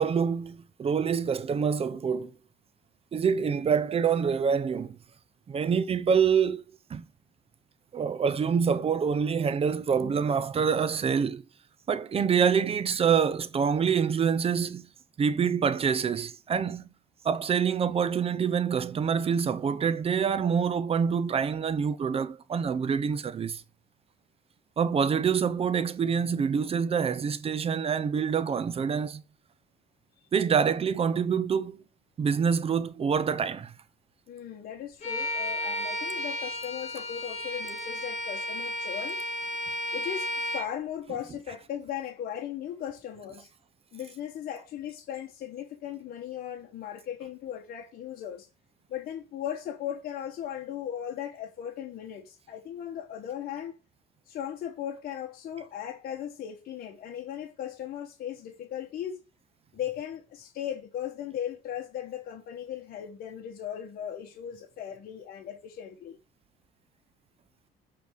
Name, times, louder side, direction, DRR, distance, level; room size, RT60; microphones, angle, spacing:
voice 1, 0.0-2.3 3.1-5.0 5.5-7.0 7.9-11.4 11.9-14.9 15.2-16.9 17.2-23.6 24.8-29.2 30.3-31.8 32.2-33.7, right 6 dB, 35° right, 0.7 m, -26 dB
voice 2, 34.3-39.2 39.9-43.5 43.9-48.5 48.9-53.8 54.3-59.2 59.7-66.2, left 10 dB, 60° left, 1.2 m, -37 dB
Bowed string instrument, 35.0-40.7, left 1 dB, 40° left, 3.8 m, -33 dB
8.2 x 3.4 x 6.4 m
cardioid pair, 110°, 17 cm